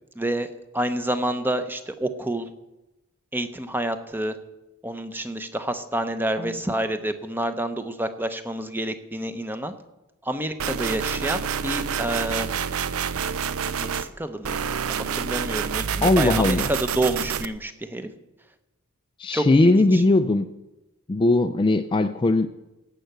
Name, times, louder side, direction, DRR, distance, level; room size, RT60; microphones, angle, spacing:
voice 1, 0.2-0.5 0.7-2.5 3.3-4.4 4.8-9.7 10.2-12.5 13.8-14.6 14.9-16.6 16.9-18.1 19.3-20.0, right 1 dB, 10° right, 9 dB, 0.7 m, -28 dB
sound 1, 10.6-14.1 14.4-17.4, right 7 dB, 75° right, 0.5 m, -28 dB
voice 2, 16.0-16.7 19.2-20.5 21.1-22.5, left 2 dB, 25° left, 9 dB, 0.4 m, -19 dB
16.5 x 5.8 x 7.9 m, 0.98 s
head